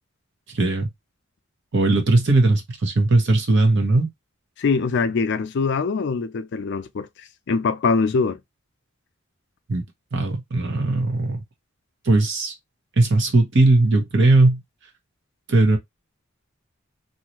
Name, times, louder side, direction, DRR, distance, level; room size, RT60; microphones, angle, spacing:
voice 1, 0.5-0.9 1.7-4.1 9.7-9.8 10.1-11.4 12.1-12.5 13.0-14.6 15.5-15.8, right 2 dB, 60° right, 0.9 m, -18 dB
voice 2, 4.6-8.4, left 4 dB, 60° left, 0.4 m, -23 dB
2.7 x 2.3 x 2.9 m
head